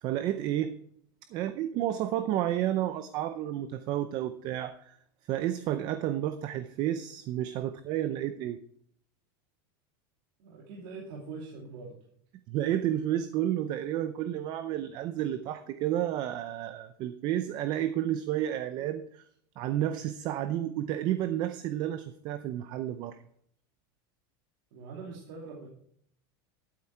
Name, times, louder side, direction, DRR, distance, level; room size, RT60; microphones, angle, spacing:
voice 1, 0.0-0.7 1.3-5.0 5.3-8.6 12.5-19.2 19.6-23.2, right 12 dB, 35° right, 11 dB, 0.6 m, -31 dB
voice 2, 10.4-12.0 24.7-25.7, right 4 dB, 60° right, -2 dB, 2.7 m, -43 dB
12.5 x 8.7 x 4.6 m, 0.65 s
supercardioid pair, 165°, 12 cm